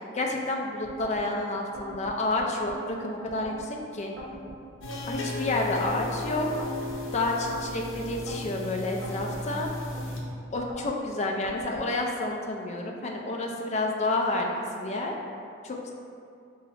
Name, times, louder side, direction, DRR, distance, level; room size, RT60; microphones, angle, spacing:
voice 1, 0.1-4.1 5.1-6.6 7.1-9.7 10.5-14.5 14.7-15.1 15.6-15.9, left 2 dB, 35° left, 1 dB, 0.4 m, -29 dB
sound 1, 0.8-1.2 1.7-2.8 3.3-3.7 4.2-5.2 5.7-6.1 6.6-7.6 8.1-8.5 9.0-10.1 10.5-10.9 11.4-11.9, right 1 dB, 50° right, 1.0 m, -43 dB
sound 2, 4.8-10.2, left 1 dB, 75° left, 0.7 m, -35 dB
4.2 x 2.8 x 4.1 m, 2.4 s
head